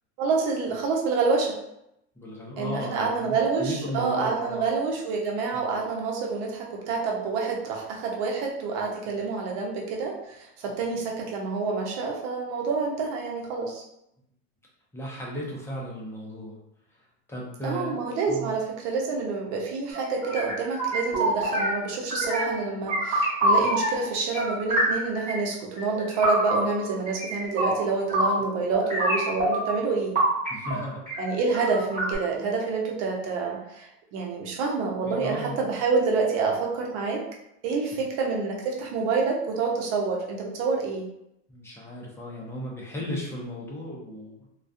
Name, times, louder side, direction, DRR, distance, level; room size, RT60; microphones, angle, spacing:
voice 1, 0.2-1.5 2.6-13.8 17.6-30.2 31.2-37.2 37.6-41.1, right 4 dB, 65° right, 0 dB, 0.8 m, -28 dB
voice 2, 2.2-4.7 5.5-5.6 14.9-16.6 17.3-18.0 18.3-18.5 30.5-31.3 35.0-35.7 37.9-38.0 41.5-44.5, equal, 5° left, -4 dB, 0.5 m, -35 dB
sound 1, 19.9-21.8 22.1-22.6 22.9-24.0 24.3-25.4 25.8-28.4 28.7-29.8 30.2-32.2, right 1 dB, 20° right, 1.3 m, -26 dB
2.3 x 2.3 x 2.5 m, 0.80 s
supercardioid pair, 130°, 38 cm